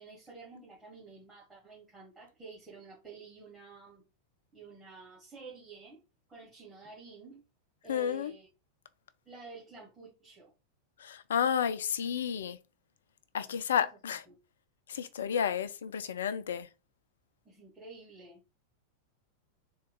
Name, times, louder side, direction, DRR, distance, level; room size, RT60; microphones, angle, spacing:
voice 1, 0.0-4.1 4.5-6.0 6.3-7.4 7.8-8.5 9.3-10.5 13.4-13.9 14.3-14.4 17.5-18.4, right 4 dB, 10° right, 1.8 m, -50 dB
voice 2, 7.9-8.3 11.0-12.6 13.3-14.2 14.9-16.7, left 8 dB, 65° left, 0.4 m, -31 dB
3.9 x 2.3 x 3.7 m
figure-of-eight pair, 90°, 0 cm